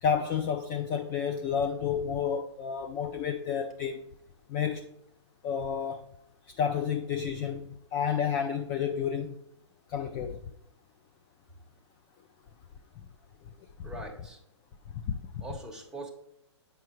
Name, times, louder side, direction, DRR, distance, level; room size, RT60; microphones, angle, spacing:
voice 1, 0.0-4.0 4.5-4.9 5.4-6.1 6.5-9.3 9.9-10.4 15.1-15.4, left 7 dB, 20° left, 0.3 m, -30 dB
voice 2, 13.8-14.4 15.4-16.1, right 2 dB, 5° right, 1.0 m, -42 dB
7.7 x 5.4 x 3.0 m
hypercardioid pair, 135°, 15 cm